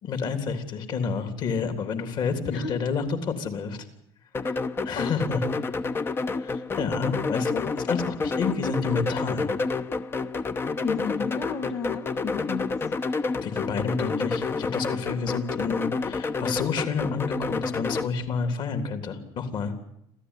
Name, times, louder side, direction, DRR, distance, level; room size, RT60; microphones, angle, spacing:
voice 1, 0.0-3.8 4.4-5.6 6.4-9.6 13.4-19.7, left 5 dB, 45° left, 8 dB, 3.3 m, -29 dB
sound 1, 4.3-18.1, left 4 dB, 20° left, 0.9 m, -29 dB
voice 2, 10.8-12.7, left 6 dB, 75° left, 4 dB, 2.5 m, -32 dB
27.0 x 15.5 x 9.9 m, 0.78 s
cardioid pair, 135°, 10 cm